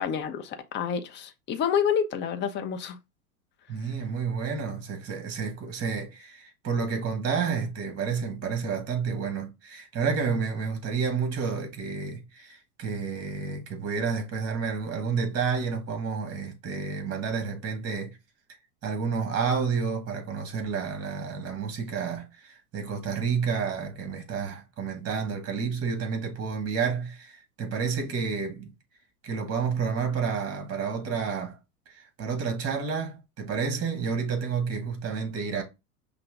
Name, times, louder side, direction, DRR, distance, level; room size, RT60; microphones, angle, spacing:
voice 1, 0.0-3.0, left 7 dB, 25° left, 0.6 m, -28 dB
voice 2, 3.7-18.2 18.8-28.7 29.2-31.6 31.9-35.6, right 5 dB, 30° right, 1.6 m, -30 dB
5.6 x 2.3 x 3.6 m
hypercardioid pair, 95°, 47 cm